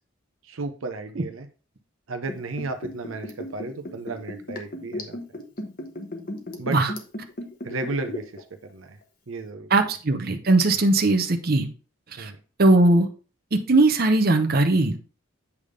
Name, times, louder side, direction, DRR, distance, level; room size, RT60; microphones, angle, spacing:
voice 1, 0.4-1.5 2.1-5.2 6.6-6.8 7.6-9.0 9.3-9.7 12.2-12.4, right 3 dB, 75° right, 7 dB, 0.7 m, -33 dB
Liquid, 2.2-8.4 8.7-8.8, left 1 dB, 45° left, 1.2 m, -35 dB
voice 2, 9.7-11.7 12.2-12.3 12.6-13.1 13.5-15.0, right 2 dB, 45° right, 5 dB, 0.8 m, -19 dB
8.3 x 3.6 x 5.0 m, 0.36 s
head